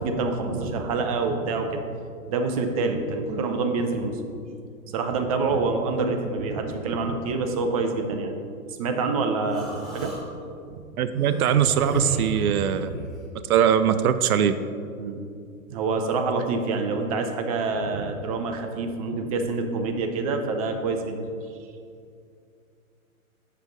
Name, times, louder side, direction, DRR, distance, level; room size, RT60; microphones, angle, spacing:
voice 1, 0.0-1.8 2.3-4.2 4.9-8.3 8.7-10.1 10.7-10.8 15.0-15.2 15.7-21.3, right 3 dB, 25° right, 5 dB, 0.5 m, -26 dB
Human voice, 9.5-10.2 11.1-13.1, right 2 dB, ahead, 1.5 m, -32 dB
voice 2, 11.0-12.9 13.5-14.6, right 9 dB, 80° right, 11 dB, 0.5 m, -21 dB
7.2 x 5.6 x 3.9 m, 2.4 s
hypercardioid pair, 135°, 43 cm